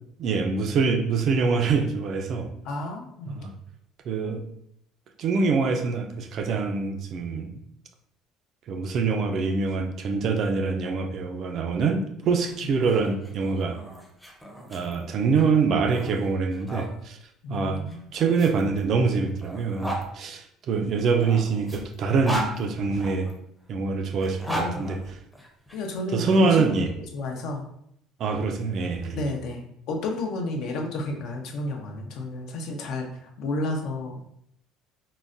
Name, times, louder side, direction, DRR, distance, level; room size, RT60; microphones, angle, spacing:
voice 1, 0.2-2.5 3.3-3.5 4.1-4.4 5.2-7.5 8.7-13.8 14.7-17.2 17.5-17.8 18.1-23.3 23.7-25.0 26.1-26.9 28.2-29.2, right 4 dB, 50° right, 6 dB, 0.4 m, -25 dB
voice 2, 2.6-3.4 17.4-18.1 24.5-24.9 25.7-26.8 27.1-27.6 29.1-34.2, left 2 dB, 65° left, 2 dB, 0.6 m, -31 dB
sound 1, 12.2-16.9 17.9-20.1 21.0-23.3 24.1-25.8, right 1 dB, ahead, 0.6 m, -36 dB
3.8 x 2.1 x 2.5 m, 0.73 s
cardioid pair, 115°, 0 cm